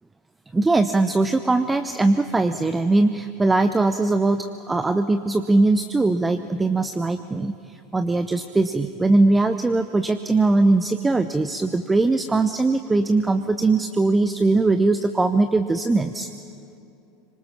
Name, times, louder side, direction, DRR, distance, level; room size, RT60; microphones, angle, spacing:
voice 1, 0.5-16.3, right 2 dB, 15° right, 10 dB, 0.8 m, -20 dB
26.0 x 25.0 x 6.0 m, 2.7 s
figure-of-eight pair, 75°, 0 cm